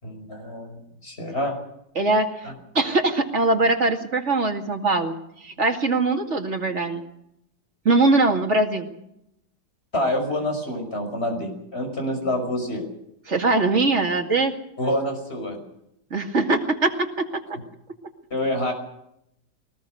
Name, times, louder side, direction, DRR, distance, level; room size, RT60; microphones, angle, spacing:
voice 1, 0.0-1.5 9.9-12.8 14.8-15.6 18.3-18.7, left 1 dB, 40° left, 4 dB, 6.0 m, -27 dB
voice 2, 2.0-2.3 2.7-5.1 5.4-7.0 7.8-8.9 13.3-14.5 16.1-17.3, right 3 dB, 45° right, 4 dB, 2.6 m, -21 dB
21.5 x 20.0 x 6.6 m, 0.79 s
omnidirectional pair, 1.7 m